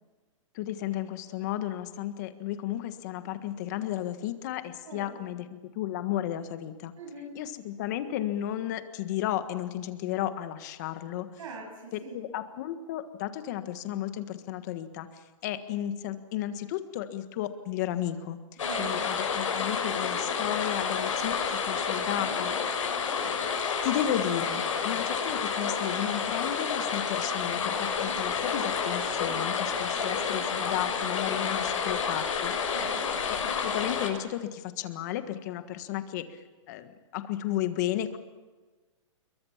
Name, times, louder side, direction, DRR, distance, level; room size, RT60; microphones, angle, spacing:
voice 1, 0.5-6.9 7.3-11.3 11.9-22.5 23.8-32.5 33.3-38.2, left 12 dB, 35° left, 10 dB, 1.5 m, -33 dB
voice 2, 4.8-5.3 6.9-7.3 11.4-12.2 18.6-19.0 23.8-23.9 29.9-30.4 32.7-33.1, right 3 dB, 85° right, -2 dB, 8.0 m, -42 dB
sound 1, 18.6-34.1, left 6 dB, 80° left, 6.4 m, -30 dB
26.0 x 23.0 x 7.3 m, 1.3 s
hypercardioid pair, 170°, 16 cm